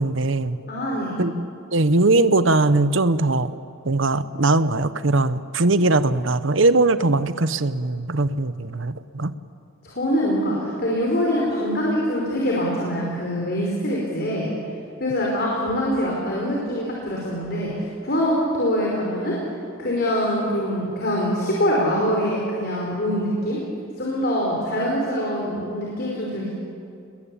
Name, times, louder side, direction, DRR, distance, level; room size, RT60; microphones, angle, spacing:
voice 1, 0.0-0.6 1.2-1.4 1.7-3.5 3.8-9.3, right 2 dB, 65° right, 13 dB, 1.0 m, -20 dB
voice 2, 0.7-1.2 9.8-14.5 15.0-19.4 19.8-23.6 24.0-26.5, equal, 50° left, -3 dB, 5.0 m, -24 dB
29.5 x 21.5 x 8.7 m, 2.5 s
head